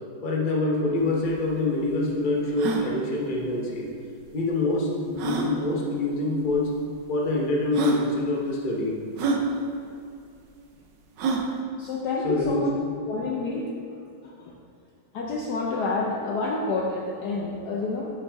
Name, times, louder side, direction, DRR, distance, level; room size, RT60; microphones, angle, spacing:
voice 1, 0.2-3.9 4.3-6.7 7.1-9.1 12.2-12.6 13.1-13.2, left 2 dB, 35° left, -2 dB, 0.9 m, -26 dB
sound 1, 1.0-1.1 1.3-1.4 1.9-2.0 2.5-2.9 4.2-4.3 5.2-5.5 6.5-6.6 7.3-7.4 7.7-8.0 9.2-9.4 11.2-11.5, right 3 dB, 65° right, 1.3 m, -26 dB
voice 2, 11.8-12.7 13.1-13.7 14.2-14.5 15.1-18.1, left 3 dB, 65° left, -2 dB, 1.1 m, -28 dB
7.6 x 7.5 x 3.5 m, 2.5 s
omnidirectional pair, 2.3 m